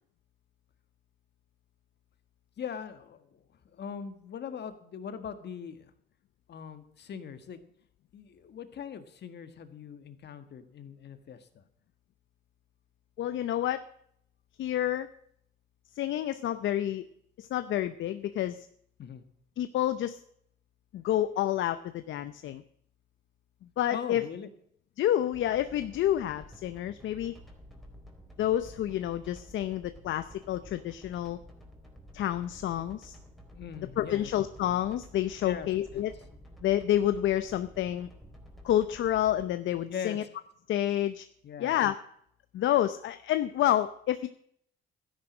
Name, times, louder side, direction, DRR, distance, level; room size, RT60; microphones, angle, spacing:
voice 1, 2.6-5.9 6.5-7.6 8.1-11.6 19.0-19.2 23.9-24.5 33.5-34.3 35.4-35.7 35.9-36.0 39.9-40.2 41.4-41.8, left 7 dB, 60° left, 9 dB, 1.7 m, -41 dB
voice 2, 13.2-13.9 14.6-15.1 15.9-17.0 17.4-18.7 19.6-20.2 20.9-22.6 23.8-24.3 25.0-27.4 28.4-31.4 32.1-33.2 34.0-36.1 36.6-38.1 38.6-40.2 40.7-41.3 41.6-42.0 42.5-44.3, left 12 dB, 75° left, 11 dB, 0.7 m, -29 dB
sound 1, 25.3-39.4, equal, ahead, 3.9 m, -51 dB
13.0 x 10.5 x 6.3 m, 0.67 s
cardioid pair, 90°, 20 cm